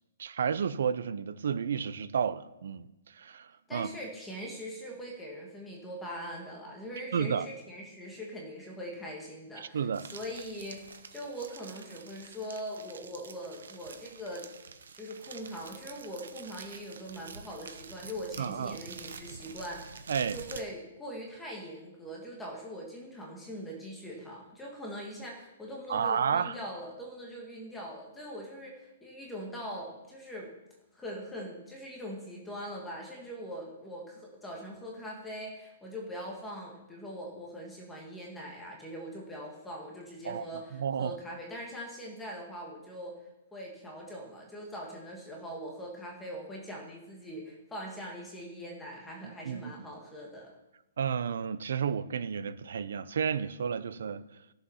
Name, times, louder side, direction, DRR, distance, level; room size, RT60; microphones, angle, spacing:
voice 1, 0.2-2.9 3.2-3.9 7.1-7.4 9.7-10.1 18.4-18.8 20.1-20.4 25.9-26.5 40.2-40.4 40.7-41.1 49.2-49.7 51.0-54.2, right 7 dB, 65° right, 0.7 m, -31 dB
voice 2, 3.7-9.9 10.1-14.5 14.9-30.5 30.9-43.2 43.5-50.5, equal, 5° left, 1.5 m, -42 dB
sound 1, 9.9-20.6, right 5 dB, 90° right, 1.0 m, -48 dB
13.5 x 7.1 x 5.6 m
hypercardioid pair, 175°, 0 cm